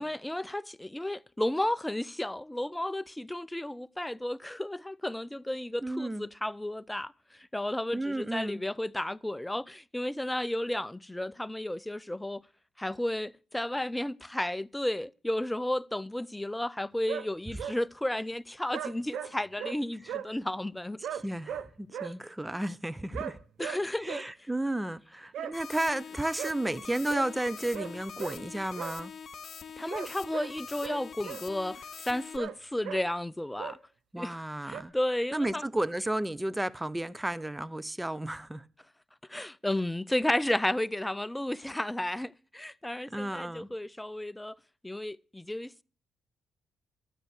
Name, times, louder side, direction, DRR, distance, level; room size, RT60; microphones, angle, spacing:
voice 1, 0.0-12.4 12.8-21.0 22.0-22.1 23.6-24.5 25.4-25.5 29.8-33.8 34.2-34.4 34.6-35.6 39.3-44.6 44.8-45.8, left 1 dB, 10° left, 0.6 m, -33 dB
voice 2, 5.8-6.2 7.9-8.6 21.1-23.4 24.0-29.1 34.1-34.9 35.3-38.6 43.1-43.7, right 1 dB, 10° right, 1.0 m, -33 dB
sound 1, 17.1-17.3 17.6-17.8 18.7-19.3 19.6-19.8 20.1-20.3 21.0-22.1 23.1-23.3 23.6-23.8 24.1-24.2 25.3-25.5 26.4-26.5 27.1-27.3 27.7-27.9 28.2-28.4 28.7-28.9 29.9-30.5 30.8-31.4 32.4-32.6 32.8-33.0 33.6-33.8 34.7-34.8, right 9 dB, 70° right, 0.9 m, -37 dB
sound 2, 25.5-32.4, left 6 dB, 55° left, 1.0 m, -44 dB
13.0 x 9.3 x 6.5 m
hypercardioid pair, 45°, 0 cm